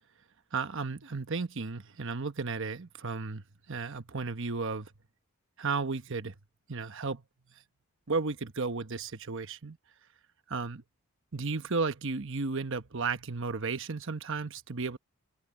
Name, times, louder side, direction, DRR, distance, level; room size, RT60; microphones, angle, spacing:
voice 1, 0.5-4.9 5.6-6.3 6.7-7.2 8.1-9.8 10.5-10.8 11.3-15.0, right 4 dB, 60° right, 1.1 m, -34 dB
head